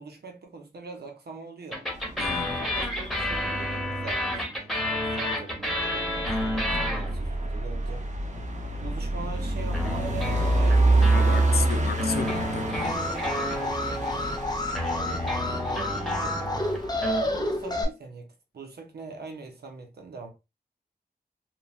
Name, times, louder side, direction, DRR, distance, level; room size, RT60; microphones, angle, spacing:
voice 1, 0.0-1.9 2.6-8.1 8.8-11.6 13.2-14.4 14.8-16.7 17.2-20.3, right 4 dB, 90° right, 0.7 m, -42 dB
sound 1, 1.7-7.5 9.7-17.2, left 1 dB, ahead, 1.0 m, -31 dB
sound 2, 2.0-4.2 5.8-17.6, right 2 dB, 50° right, 0.6 m, -27 dB
voice 2, 2.2-2.6 6.7-7.0 11.0-13.0, left 6 dB, 75° left, 0.4 m, -33 dB
Alarm, 12.7-17.8, left 2 dB, 25° left, 0.6 m, -30 dB
3.0 x 2.1 x 2.3 m
wide cardioid pair, 55°, 16 cm